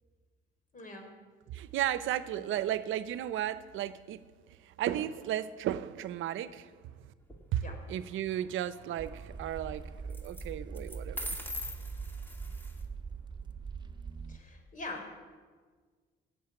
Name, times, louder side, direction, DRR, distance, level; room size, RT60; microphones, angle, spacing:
voice 1, 0.7-1.1 2.3-2.4 7.6-7.8 14.3-15.1, left 2 dB, 40° left, 3.8 m, -43 dB
voice 2, 1.5-4.2 4.6-6.7 7.5-11.4, right 11 dB, 80° right, 0.7 m, -34 dB
sound 1, 7.2-7.8 10.1-10.4 10.8-12.8, left 1 dB, 10° left, 2.3 m, -41 dB
sound 2, 9.0-14.4, right 5 dB, 20° right, 0.8 m, -42 dB
15.0 x 8.1 x 9.9 m
cardioid pair, 90°, 20 cm